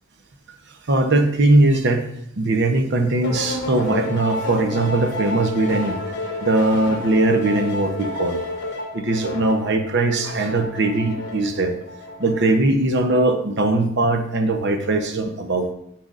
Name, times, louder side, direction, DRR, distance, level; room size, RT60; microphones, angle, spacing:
voice 1, 0.9-2.1 2.4-8.4 8.9-11.8 12.2-15.7, right 2 dB, 55° right, 6 dB, 0.8 m, -20 dB
sound 1, 3.2-12.6, left 2 dB, 55° left, 1.4 m, -31 dB
10.5 x 5.8 x 2.5 m, 0.73 s
head